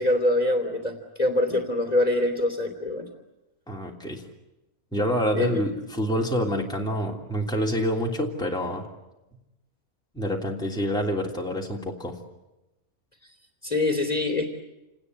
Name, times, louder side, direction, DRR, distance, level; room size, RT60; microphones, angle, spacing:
voice 1, 0.0-3.1 5.3-5.6 13.6-14.5, left 1 dB, 25° left, 5 dB, 3.2 m, -24 dB
voice 2, 3.7-4.2 4.9-8.8 10.1-12.2, equal, 5° left, -1 dB, 3.1 m, -27 dB
29.0 x 19.5 x 9.8 m, 0.98 s
omnidirectional pair, 1.6 m